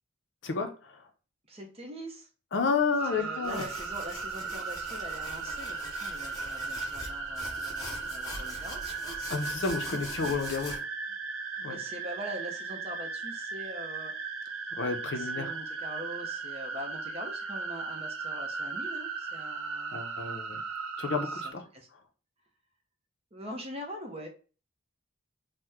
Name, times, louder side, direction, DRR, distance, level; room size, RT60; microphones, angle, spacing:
voice 1, 0.4-1.0 2.5-3.6 9.3-10.8 11.6-11.8 14.8-15.5 19.9-20.6 21.0-21.7, left 4 dB, 55° left, 0.5 m, -31 dB
voice 2, 1.5-2.3 3.1-10.3 11.7-14.1 15.0-20.0 21.3-21.9 23.3-24.3, equal, 30° right, 0.6 m, -43 dB
sound 1, 3.0-21.5, right 4 dB, 75° right, 0.5 m, -37 dB
sound 2, 3.4-10.8, left 2 dB, 15° left, 0.7 m, -43 dB
2.9 x 2.1 x 3.4 m
head